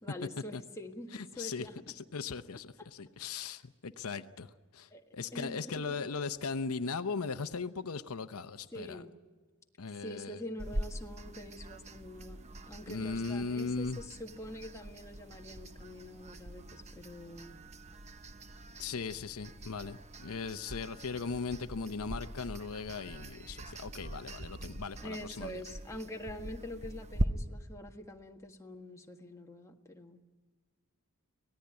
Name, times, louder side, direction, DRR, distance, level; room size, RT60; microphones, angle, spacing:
voice 1, 0.0-2.0 2.8-2.9 4.9-6.1 8.7-9.2 10.0-12.4 12.7-17.6 25.0-30.2, left 1 dB, 15° left, 2 dB, 1.6 m, -45 dB
voice 2, 1.1-1.7 2.1-9.0 9.8-10.4 12.9-14.0 18.8-25.6, left 4 dB, 80° left, 10 dB, 0.8 m, -38 dB
sound 1, 10.6-27.3, right 1 dB, 30° right, 0.9 m, -42 dB
25.0 x 18.0 x 9.7 m, 1.4 s
head